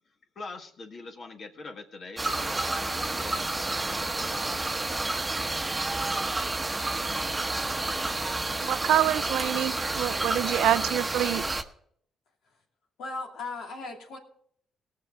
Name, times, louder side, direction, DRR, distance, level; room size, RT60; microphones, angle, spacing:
voice 1, 0.3-4.8, left 3 dB, 50° left, 1.7 m, -44 dB
sound 1, 2.2-11.6, right 2 dB, 15° right, 1.0 m, -30 dB
voice 2, 8.6-11.5, right 12 dB, 80° right, 0.5 m, -26 dB
voice 3, 13.0-14.2, left 3 dB, 80° left, 2.7 m, -37 dB
18.5 x 6.8 x 4.8 m
cardioid pair, 90°, 0 cm